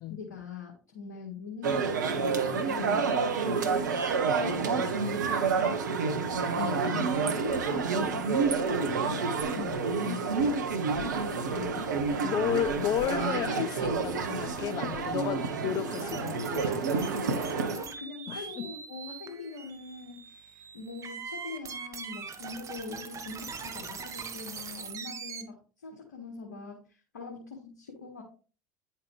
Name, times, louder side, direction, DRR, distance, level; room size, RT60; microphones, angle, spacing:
voice 1, 0.1-1.8 2.1-3.1 3.5-3.7 4.4-5.0 5.3-6.2 7.2-9.3 10.0-10.6 11.3-12.0 17.1-28.2, left 5 dB, 80° left, 1.8 m, -42 dB
sound 1, 1.6-17.8, right 5 dB, 80° right, 1.1 m, -29 dB
voice 2, 6.5-7.2 9.6-9.9 12.2-16.9 18.3-18.7, left 11 dB, 45° left, 0.7 m, -33 dB
sound 2, 15.9-25.4, right 6 dB, 35° right, 1.6 m, -42 dB
10.0 x 5.7 x 3.3 m
hypercardioid pair, 75°, 10 cm